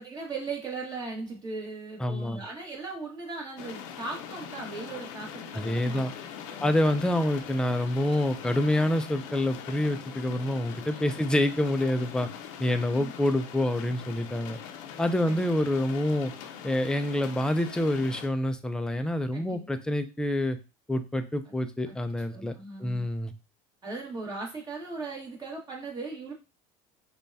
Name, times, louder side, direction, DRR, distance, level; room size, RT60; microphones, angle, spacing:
voice 1, 0.0-6.0 6.5-6.7 12.9-13.1 15.3-15.4 19.3-19.7 21.9-22.0 22.3-23.1 23.8-26.3, right 3 dB, 25° right, -1 dB, 1.6 m, -38 dB
voice 2, 2.0-2.4 5.5-6.1 6.6-12.3 12.6-14.6 15.0-16.3 16.6-20.6 20.9-22.5 22.8-23.3, left 1 dB, 5° left, 8 dB, 0.4 m, -27 dB
sound 1, 3.6-18.3, left 8 dB, 85° left, 0.6 m, -42 dB
5.1 x 2.3 x 2.6 m, 0.29 s
supercardioid pair, 115°, 16 cm